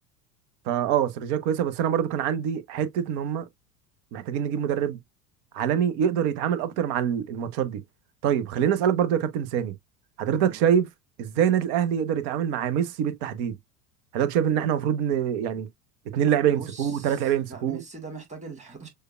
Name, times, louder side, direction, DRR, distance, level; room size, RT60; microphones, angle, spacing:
voice 1, 0.7-3.5 4.1-5.0 5.5-7.8 8.2-9.7 10.2-10.9 11.2-13.6 14.1-15.7 16.1-17.8, right 9 dB, 45° right, 0.8 m, -25 dB
voice 2, 16.5-17.2 17.5-18.9, right 4 dB, 15° right, 1.8 m, -41 dB
6.5 x 2.2 x 2.3 m
figure-of-eight pair, 75°, 48 cm